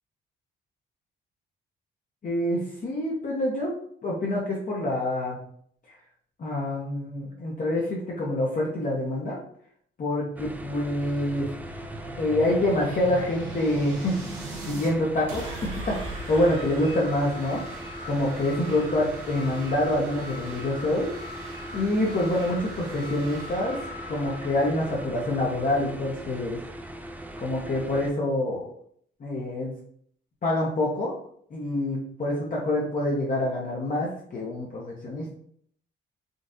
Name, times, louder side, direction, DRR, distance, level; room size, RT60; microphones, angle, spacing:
voice 1, 2.2-3.7 4.0-5.4 6.4-9.4 10.0-11.5 12.2-14.2 14.7-17.8 18.0-21.1 21.7-23.8 24.1-26.6 27.4-28.7 29.2-29.7 30.4-31.1 31.5-35.3, left 1 dB, 40° left, -3 dB, 0.7 m, -26 dB
sound 1, 10.4-28.1, right 1 dB, 10° right, 0.3 m, -40 dB
sound 2, 10.6-14.9 15.3-26.9, right 1 dB, 75° right, 1.1 m, -40 dB
3.8 x 2.4 x 2.6 m, 0.62 s
cardioid pair, 100°, 21 cm